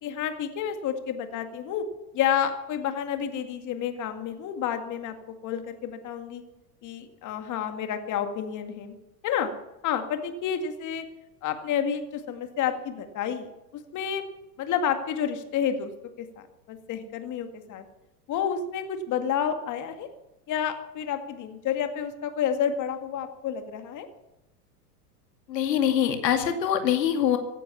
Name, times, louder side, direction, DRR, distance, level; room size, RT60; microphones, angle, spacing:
voice 1, 0.0-1.8 2.1-5.1 5.4-6.4 6.8-9.0 9.2-9.5 9.8-11.0 11.4-13.5 13.9-14.2 14.6-15.9 16.2-17.8 18.3-20.1 20.5-24.1, left 8 dB, 40° left, 7 dB, 2.1 m, -30 dB
voice 2, 25.5-27.4, left 9 dB, 85° left, 6 dB, 2.4 m, -24 dB
16.5 x 11.5 x 7.2 m, 0.96 s
hypercardioid pair, 110°, 49 cm